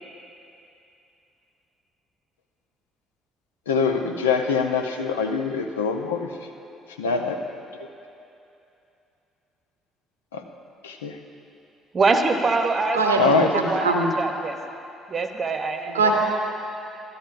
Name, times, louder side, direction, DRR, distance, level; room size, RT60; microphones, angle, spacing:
voice 1, 3.7-6.3 7.0-7.4 10.3-10.4 10.8-11.2 13.2-13.8, left 5 dB, 80° left, 4 dB, 0.5 m, -24 dB
voice 2, 11.9-14.6 15.1-16.1, right 3 dB, 35° right, 6 dB, 0.8 m, -24 dB
voice 3, 12.9-14.1 15.9-16.1, right 3 dB, 85° right, 2 dB, 0.7 m, -21 dB
13.5 x 11.5 x 2.5 m, 2.8 s
figure-of-eight pair, 50°, 0 cm